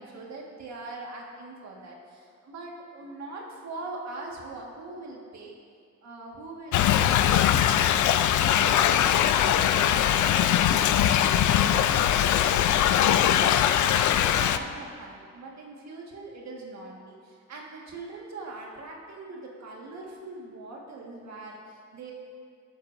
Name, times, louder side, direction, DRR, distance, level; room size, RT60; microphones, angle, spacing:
voice 1, 0.0-5.5 6.0-7.9 8.3-22.1, right 3 dB, 65° right, -2 dB, 1.8 m, -42 dB
Thunder / Rain, 6.7-14.6, left 10 dB, 75° left, 0.5 m, -21 dB
18.0 x 7.5 x 2.7 m, 2.1 s
cardioid pair, 90°, 30 cm